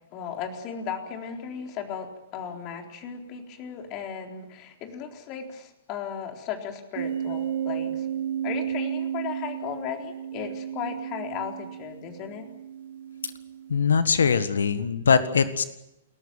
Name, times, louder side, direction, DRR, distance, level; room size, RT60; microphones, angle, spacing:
voice 1, 0.1-8.1 8.4-12.5, left 7 dB, 35° left, 3 dB, 4.0 m, -36 dB
sound 1, 7.0-14.0, right 9 dB, 55° right, 2.4 m, -33 dB
voice 2, 13.7-15.6, left 6 dB, 70° left, 12 dB, 1.6 m, -22 dB
29.0 x 14.5 x 9.0 m, 0.88 s
figure-of-eight pair, 110°, 0 cm